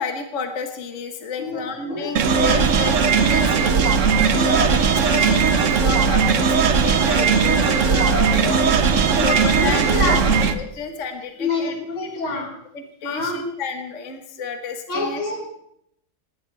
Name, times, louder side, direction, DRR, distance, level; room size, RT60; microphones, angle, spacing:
voice 1, 0.0-4.1 4.5-8.7 9.1-10.2 10.5-11.8 12.7-15.5, left 5 dB, 40° left, 5 dB, 1.6 m, -31 dB
voice 2, 1.4-2.7 3.8-4.6 5.1-5.8 9.2-10.4 11.4-12.5 13.0-13.4 14.9-15.4, left 3 dB, 75° left, -2 dB, 5.3 m, -28 dB
sound 1, 2.2-10.6, right 5 dB, 50° right, 1.0 m, -18 dB
19.5 x 17.5 x 3.4 m, 0.71 s
omnidirectional pair, 2.2 m